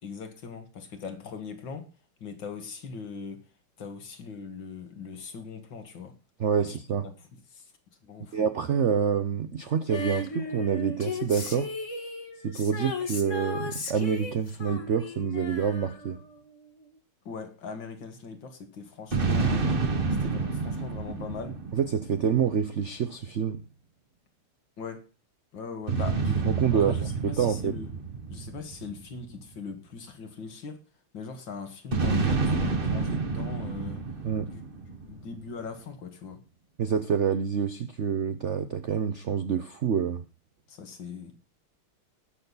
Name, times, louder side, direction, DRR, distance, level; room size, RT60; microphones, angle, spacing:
voice 1, 0.0-1.9 2.2-3.4 3.8-6.2 6.6-6.8 7.3-7.6 8.0-8.4 17.3-19.7 20.2-21.6 24.8-25.1 25.5-26.4 26.7-27.9 28.3-30.8 31.1-34.0 34.5-34.6 35.0-36.4 40.7-41.4, left 5 dB, 60° left, 2.6 m, -40 dB
voice 2, 6.4-7.1 8.3-11.7 12.4-16.2 21.7-23.6 26.4-27.8 34.2-34.5 36.8-40.2, right 7 dB, 80° right, 0.6 m, -27 dB
Female singing, 9.9-16.5 16.8-16.9, left 2 dB, 35° left, 1.9 m, -36 dB
sound 1, 19.1-22.7 25.9-29.5 31.9-35.3, right 4 dB, 30° right, 1.3 m, -29 dB
19.5 x 6.8 x 4.0 m
omnidirectional pair, 2.4 m